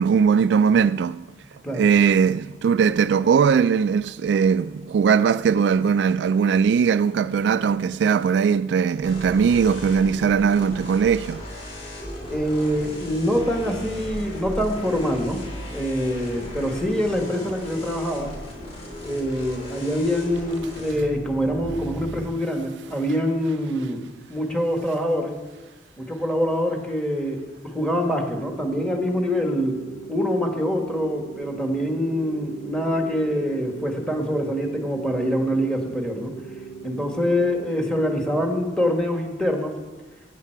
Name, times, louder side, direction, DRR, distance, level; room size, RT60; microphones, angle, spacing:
voice 1, 0.0-1.3 1.7-11.4, right 6 dB, 75° right, 0.3 m, -20 dB
voice 2, 1.4-1.9 12.3-18.3 19.0-24.0 24.3-25.3 26.0-29.8 30.1-36.3 36.8-39.7, equal, 5° left, 1.6 m, -25 dB
sound 1, 9.0-22.3, equal, 35° left, 4.5 m, -37 dB
sound 2, 28.3-38.3, right 6 dB, 60° left, 4.8 m, -39 dB
15.5 x 9.8 x 4.6 m
head